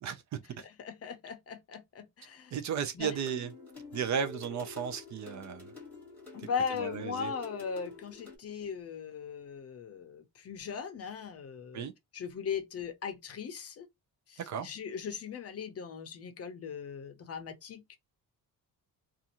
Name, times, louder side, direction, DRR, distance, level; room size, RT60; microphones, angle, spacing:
voice 1, 0.3-2.5 2.9-3.1 6.3-11.8 12.1-13.9 14.3-18.0, left 6 dB, 40° left, 0.6 m, -39 dB
voice 2, 2.5-3.5 3.9-5.7 6.4-7.3 11.7-11.9 14.5-14.7, right 7 dB, 50° right, 0.5 m, -35 dB
sound 1, 3.0-8.4, left 4 dB, 5° left, 1.3 m, -48 dB
2.6 x 2.4 x 2.8 m
cardioid pair, 165°, 37 cm